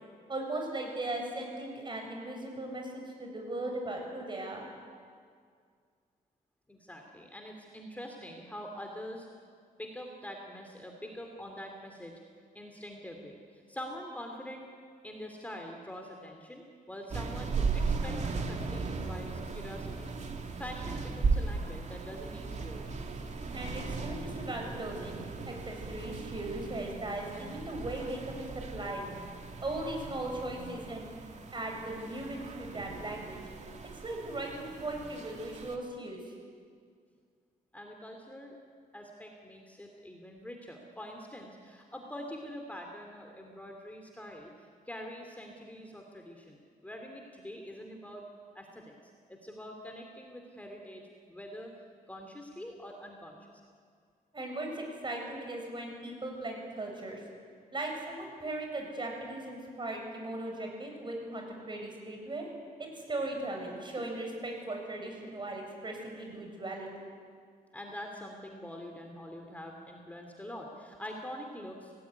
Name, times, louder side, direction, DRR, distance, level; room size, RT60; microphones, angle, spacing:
voice 1, 0.3-4.7 23.5-25.2 25.5-29.0 29.6-31.1 31.5-33.4 34.0-36.3 54.3-57.2 57.7-62.5 62.8-66.9, right 2 dB, 30° right, 2 dB, 7.4 m, -38 dB
voice 2, 6.7-9.3 9.8-12.1 12.5-14.7 15.0-20.1 20.4-23.1 37.7-38.6 38.9-48.2 48.5-48.9 49.3-51.7 52.1-53.5 67.7-71.9, equal, 10° left, 2 dB, 3.0 m, -45 dB
sound 1, 17.1-35.8, right 4 dB, 50° right, 2.7 m, -37 dB
29.0 x 18.5 x 9.7 m, 2.1 s
cardioid pair, 105°, 16 cm